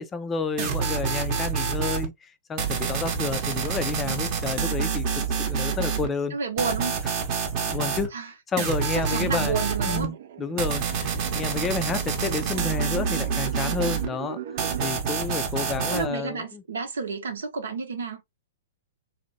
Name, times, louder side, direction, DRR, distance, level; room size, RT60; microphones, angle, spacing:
voice 1, 0.0-5.1 5.5-6.4 7.7-8.1 8.5-9.6 9.9-14.4 14.8-16.6, left 4 dB, 20° left, 0.4 m, -30 dB
sound 1, 0.6-2.1 2.6-6.1 6.6-8.1 8.6-10.1 10.6-14.1 14.6-16.1, right 6 dB, 40° right, 0.8 m, -27 dB
voice 2, 6.3-7.0 8.1-8.3 8.9-10.2 15.9-18.2, right 5 dB, 80° right, 0.7 m, -31 dB
sound 2, 9.7-14.9, right 10 dB, 65° right, 0.4 m, -39 dB
2.8 x 2.1 x 2.6 m
hypercardioid pair, 120°, 0 cm